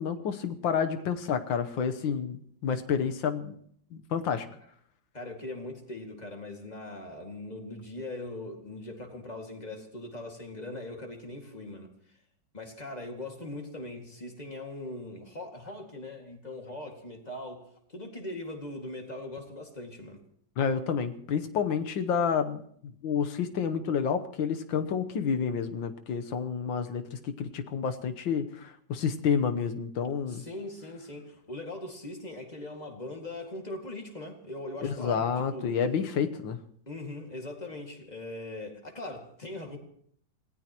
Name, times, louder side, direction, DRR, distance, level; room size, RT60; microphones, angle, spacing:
voice 1, 0.0-3.6 3.9-4.5 20.6-30.4 34.8-36.6, left 6 dB, 80° left, 8 dB, 1.8 m, -29 dB
voice 2, 5.1-11.9 12.5-20.2 30.3-35.8 36.9-39.8, left 2 dB, 20° left, 2 dB, 2.2 m, -40 dB
26.5 x 17.5 x 3.0 m, 0.63 s
omnidirectional pair, 2.0 m